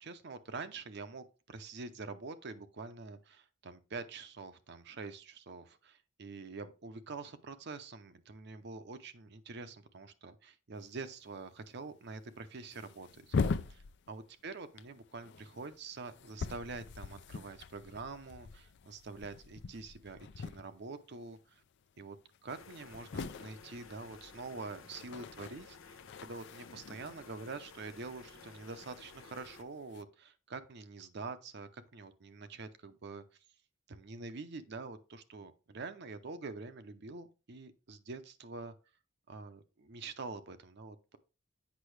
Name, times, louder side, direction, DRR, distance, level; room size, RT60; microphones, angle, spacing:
voice 1, 0.0-13.4 13.7-21.6 22.0-22.2 22.4-33.2 33.9-38.7 39.3-41.2, right 3 dB, 55° right, 0.7 m, -46 dB
sound 1, 10.9-11.1 11.3-11.4 12.1-12.3 12.6-14.5 14.8-21.1 21.3-21.7 22.0-22.1 22.3-28.6 29.5-30.0, left 4 dB, 60° left, 0.4 m, -42 dB
sound 2, 22.5-29.6, left 5 dB, 85° left, 0.8 m, -55 dB
8.2 x 5.6 x 3.2 m
head